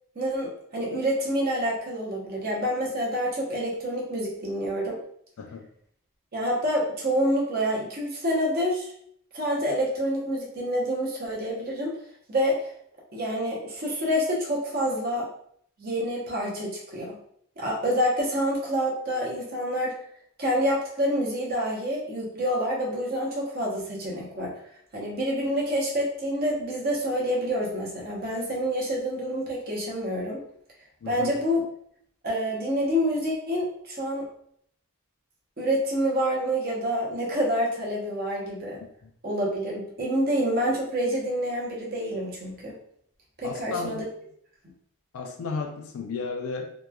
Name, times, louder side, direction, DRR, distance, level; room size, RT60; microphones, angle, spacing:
voice 1, 0.2-5.0 6.3-8.9 9.3-12.0 12.3-12.6 13.1-15.3 15.8-17.2 17.6-19.9 20.4-24.5 24.9-30.4 31.1-31.6 32.2-34.2 35.6-38.8 39.2-42.7 43.4-44.0, equal, 45° right, -3 dB, 0.7 m, -27 dB
voice 2, 43.4-44.1 45.1-46.7, left 4 dB, 80° left, 2 dB, 0.4 m, -33 dB
2.9 x 2.2 x 2.2 m, 0.65 s
head